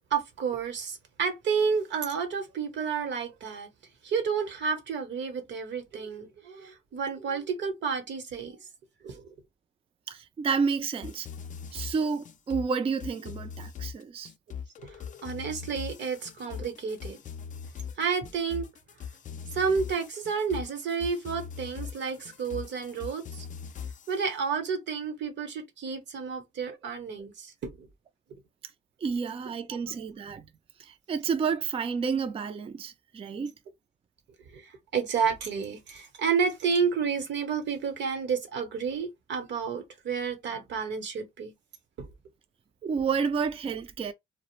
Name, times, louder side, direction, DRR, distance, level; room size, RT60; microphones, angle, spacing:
voice 1, 0.1-3.7 4.0-8.7 9.0-9.3 14.8-15.0 15.2-17.2 18.0-18.7 19.5-23.4 24.1-27.9 34.5-41.5 42.0-42.1, right 6 dB, 65° right, 0.9 m, -31 dB
voice 2, 10.1-11.3 11.7-14.3 29.0-30.4 30.8-33.5 42.8-44.1, right 5 dB, 30° right, 0.4 m, -30 dB
sound 1, 11.0-24.3, left 7 dB, 40° left, 0.4 m, -41 dB
2.3 x 2.0 x 3.0 m
cardioid pair, 90°, 20 cm